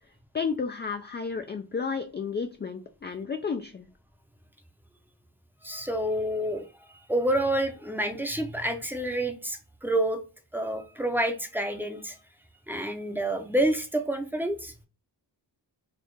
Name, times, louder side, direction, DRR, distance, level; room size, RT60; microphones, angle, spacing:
voice 1, 0.3-3.9, left 5 dB, 25° left, 6 dB, 0.3 m, -32 dB
voice 2, 5.6-6.7 7.1-10.2 10.5-12.2 12.7-14.7, right 1 dB, 5° right, 5 dB, 0.7 m, -28 dB
4.2 x 2.4 x 3.1 m, 0.32 s
wide cardioid pair, 95°, 43 cm